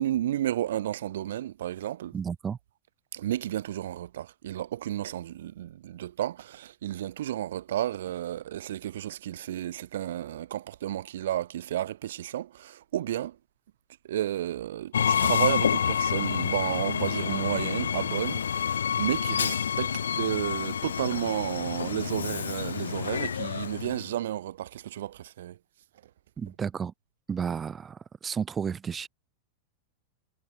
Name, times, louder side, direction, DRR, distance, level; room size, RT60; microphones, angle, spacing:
voice 1, 0.0-2.1 3.1-13.4 14.1-25.6, right 12 dB, 60° right, 1.7 m, -32 dB
voice 2, 2.1-2.6 26.4-26.9 27.3-29.1, right 6 dB, 20° right, 0.9 m, -32 dB
Train, 14.9-24.1, left 7 dB, 70° left, 1.7 m, -28 dB
figure-of-eight pair, 90°, 0 cm